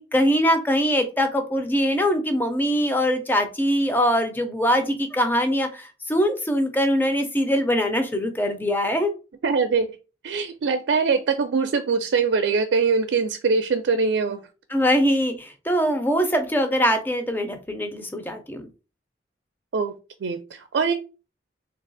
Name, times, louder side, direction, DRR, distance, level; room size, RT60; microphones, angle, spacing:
voice 1, 0.0-9.1 14.7-18.7, equal, 10° left, 6 dB, 0.5 m, -22 dB
voice 2, 9.4-9.9 10.2-14.4 19.7-19.9 20.2-20.9, right 5 dB, 80° right, 7 dB, 0.4 m, -22 dB
3.4 x 2.3 x 3.9 m, 0.33 s
head